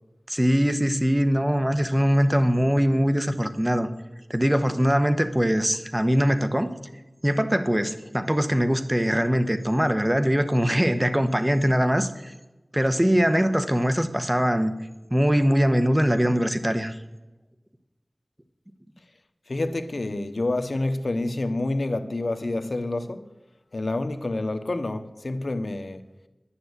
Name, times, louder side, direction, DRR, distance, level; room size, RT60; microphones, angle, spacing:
voice 1, 0.3-3.9 4.3-6.7 7.2-12.3 12.7-14.7 15.1-16.9, equal, 15° right, 1.2 m, -22 dB
voice 2, 19.5-23.3 23.7-26.0, left 2 dB, 70° left, 1.1 m, -28 dB
10.5 x 10.0 x 8.1 m
wide cardioid pair, 55°, 0 cm